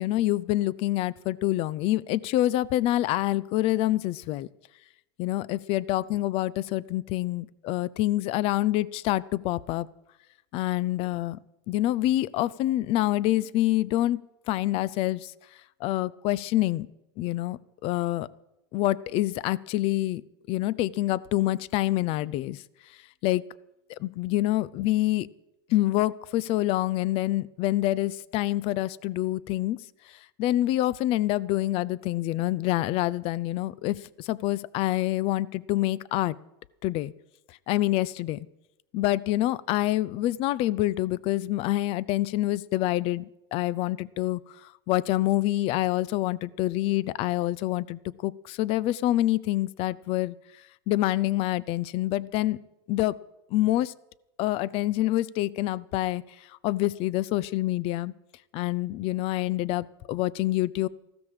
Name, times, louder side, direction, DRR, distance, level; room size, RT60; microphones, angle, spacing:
voice 1, 0.0-4.5 5.2-9.9 10.5-11.4 11.7-14.2 14.5-15.3 15.8-16.9 17.2-18.3 18.7-20.2 20.5-22.6 23.2-23.4 23.9-25.3 25.7-29.8 30.1-36.4 36.8-37.1 37.5-38.4 38.9-50.4 50.9-52.6 52.9-53.2 53.5-53.9 54.4-58.1 58.5-60.9, left 15 dB, 50° left, 21 dB, 0.6 m, -26 dB
15.0 x 13.0 x 5.0 m, 0.90 s
supercardioid pair, 115°, 13 cm